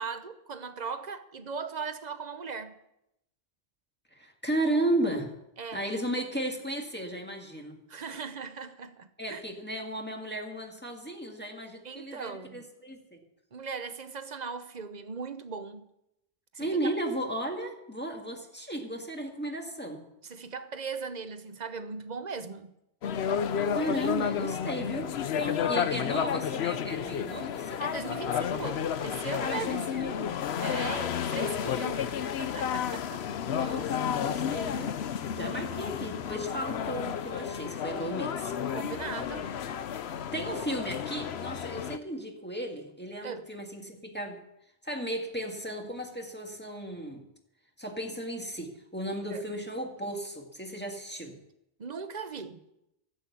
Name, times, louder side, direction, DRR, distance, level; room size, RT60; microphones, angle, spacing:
voice 1, 0.0-2.8 5.6-5.9 7.9-9.4 11.8-12.7 13.5-15.9 16.5-16.8 20.2-22.7 25.4-26.1 27.8-29.9 30.6-32.1 32.4-33.3 34.5-34.7 38.7-39.5 43.2-43.5 49.3-49.4 51.8-52.6, right 5 dB, 45° right, 0.9 m, -39 dB
voice 2, 4.1-5.3 5.7-7.8 9.2-13.2 16.6-20.0 23.7-27.9 29.4-30.4 33.4-35.0 35.3-38.5 40.3-44.4 44.8-47.2 47.8-51.4, right 1 dB, 10° left, 1.8 m, -35 dB
sound 1, 23.0-42.0, left 8 dB, 85° left, 1.0 m, -31 dB
12.0 x 8.5 x 8.3 m
omnidirectional pair, 1.1 m